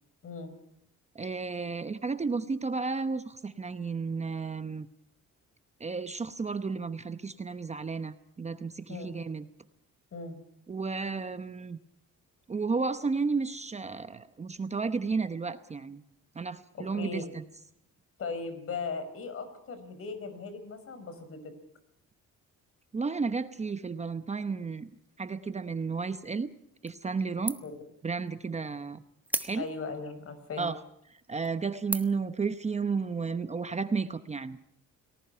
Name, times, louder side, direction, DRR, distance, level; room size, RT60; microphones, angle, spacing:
voice 1, 1.1-4.9 5.8-9.5 10.7-11.8 12.5-16.0 16.3-17.4 22.9-24.9 25.2-26.5 26.8-27.6 28.0-29.0 29.4-29.7 30.6-30.8 31.3-34.6, right 4 dB, 20° right, 10 dB, 0.9 m, -32 dB
voice 2, 16.7-17.2 18.2-21.5 27.6-27.8 29.6-30.7, left 4 dB, 50° left, 11 dB, 5.2 m, -38 dB
sound 1, 26.9-27.2 27.5-27.9 28.3-28.4 29.2-30.0 30.6-30.7 31.2-31.5 31.9-32.3, right 1 dB, 5° right, 1.3 m, -35 dB
29.5 x 19.5 x 5.7 m, 0.73 s
cardioid pair, 145°, 30 cm